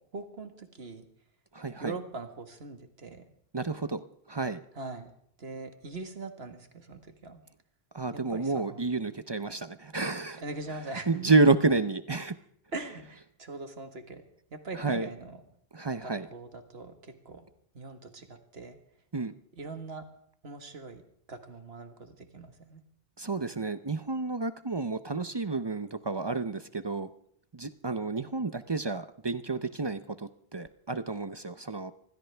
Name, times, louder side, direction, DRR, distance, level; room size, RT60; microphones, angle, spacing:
voice 1, 0.1-1.1 1.8-3.2 4.8-5.1 5.4-7.4 8.1-8.8 10.4-11.3 12.7-14.3 14.5-15.4 16.0-17.5 17.7-18.8 19.5-20.1 20.4-21.0 21.3-22.8, right 3 dB, 75° right, 7 dB, 1.9 m, -41 dB
voice 2, 1.5-1.9 3.5-4.0 4.3-4.6 7.9-10.4 11.1-12.3 14.7-15.1 15.7-16.3 19.1-19.3 23.2-27.1 27.5-31.9, right 3 dB, 30° right, 12 dB, 0.6 m, -29 dB
23.5 x 16.0 x 3.4 m, 0.67 s
omnidirectional pair, 1.1 m